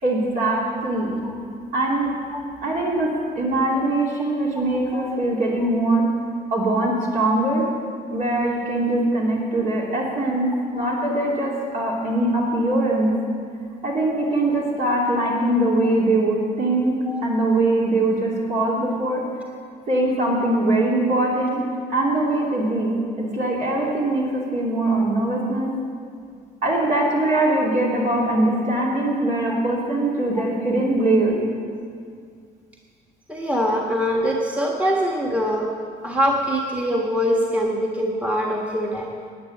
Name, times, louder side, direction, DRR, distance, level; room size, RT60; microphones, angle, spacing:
voice 1, 0.0-1.2 1.7-2.1 2.6-3.1 3.4-6.0 6.5-7.7 8.1-13.1 13.8-16.9 17.2-19.2 19.9-21.6 21.9-25.7 26.6-31.3, right 2 dB, 50° right, -4 dB, 2.8 m, -22 dB
voice 2, 33.3-35.7 36.0-39.1, equal, 10° right, -1 dB, 1.5 m, -23 dB
11.0 x 9.5 x 8.4 m, 2.2 s
cardioid pair, 110°, 17 cm